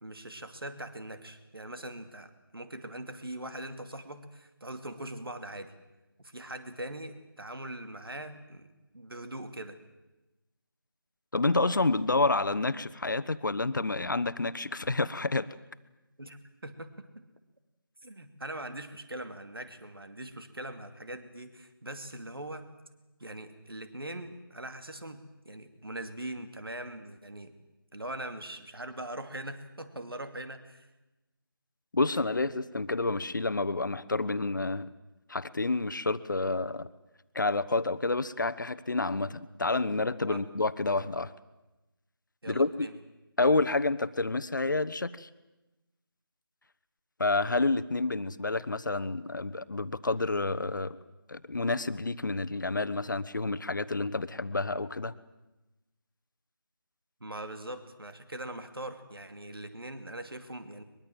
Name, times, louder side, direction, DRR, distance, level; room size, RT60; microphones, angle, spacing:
voice 1, 0.0-5.7 6.2-9.8 16.2-17.0 18.0-22.7 23.2-27.5 27.9-30.9 40.2-40.4 42.4-42.9 57.2-60.8, right 1 dB, 75° right, 8 dB, 2.6 m, -41 dB
voice 2, 11.3-15.5 31.9-34.9 35.3-36.9 37.3-41.3 42.5-42.9 43.4-45.3 47.2-51.0 51.3-55.1, left 3 dB, 55° left, 13 dB, 1.1 m, -29 dB
23.0 x 22.5 x 7.8 m, 1.0 s
figure-of-eight pair, 165°, 12 cm